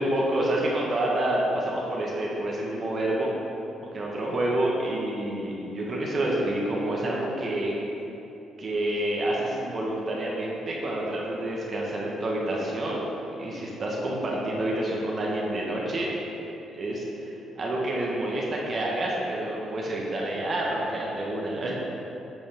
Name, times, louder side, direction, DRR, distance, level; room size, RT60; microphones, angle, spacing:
voice 1, 0.0-3.3 3.9-7.7 8.6-13.1 13.4-16.1 16.7-21.7, right 1 dB, 45° right, -3 dB, 1.2 m, -28 dB
9.0 x 5.2 x 3.4 m, 2.9 s
cardioid pair, 90°, 0 cm